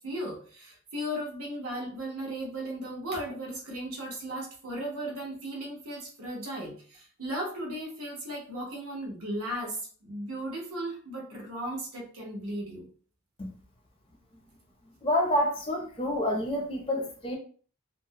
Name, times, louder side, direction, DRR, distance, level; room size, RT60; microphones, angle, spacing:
voice 1, 0.0-12.9, right 1 dB, 75° right, 0.8 m, -36 dB
voice 2, 15.0-17.4, left 1 dB, 25° left, 0.4 m, -28 dB
2.4 x 2.0 x 2.7 m
head